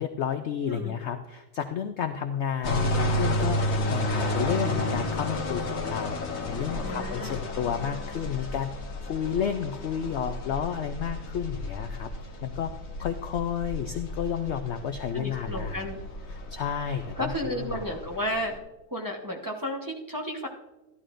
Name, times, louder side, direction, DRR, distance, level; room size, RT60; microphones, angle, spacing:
voice 1, 0.0-8.7 9.0-12.1 12.4-12.7 13.0-15.9 16.3-18.0, left 8 dB, 65° left, 8 dB, 0.7 m, -31 dB
sound 1, 2.6-18.6, left 1 dB, 50° left, 1.4 m, -32 dB
voice 2, 6.8-7.4 15.1-16.0 17.2-18.5 18.9-20.5, equal, 15° right, 0 dB, 0.9 m, -32 dB
14.0 x 11.5 x 2.5 m, 1.0 s
omnidirectional pair, 1.6 m